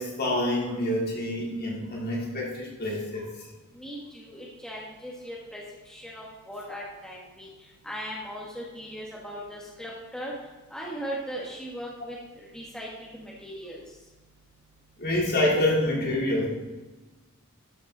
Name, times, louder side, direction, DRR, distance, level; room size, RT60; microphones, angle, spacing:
voice 1, 0.0-3.2 15.0-16.5, left 1 dB, 45° left, -4 dB, 3.1 m, -27 dB
voice 2, 3.7-7.5 7.8-10.3 10.7-13.8, equal, 5° left, -4 dB, 1.4 m, -38 dB
12.5 x 7.1 x 3.9 m, 1.2 s
head